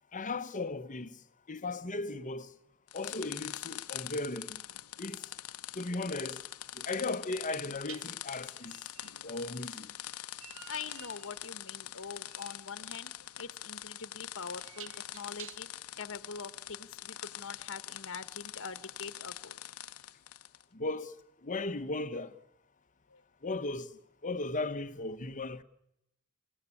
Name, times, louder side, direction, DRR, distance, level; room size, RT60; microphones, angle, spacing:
voice 1, 0.1-1.2 1.5-2.5 2.9-4.6 5.0-5.3 5.7-6.4 6.7-8.8 9.2-9.9 20.7-21.2 21.4-22.3 23.4-23.9 24.2-25.6, left 2 dB, 35° left, 1.1 m, -36 dB
sound 1, 2.9-20.6, left 13 dB, 90° left, 0.9 m, -44 dB
sound 2, 5.4-5.6 7.8-15.9, right 8 dB, 65° right, 1.8 m, -53 dB
voice 2, 10.7-13.1 13.4-15.7 16.0-19.6 23.1-23.2, left 5 dB, 65° left, 1.2 m, -44 dB
28.5 x 16.5 x 8.5 m
head